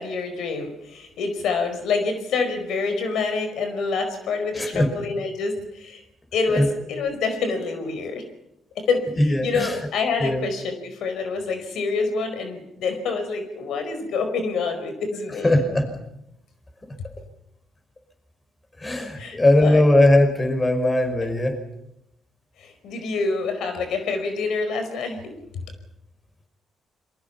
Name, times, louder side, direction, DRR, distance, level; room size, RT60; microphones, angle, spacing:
voice 1, 0.0-6.0 6.3-8.2 8.7-15.5 19.2-19.8 22.6-25.3, left 4 dB, 75° left, 7 dB, 4.9 m, -27 dB
voice 2, 4.5-4.9 6.5-6.7 9.2-9.8 10.2-10.4 15.4-15.9 16.9-17.0 18.8-21.6, left 1 dB, 20° left, 6 dB, 5.7 m, -19 dB
28.5 x 23.0 x 5.8 m, 0.82 s
cardioid pair, 90°, 0 cm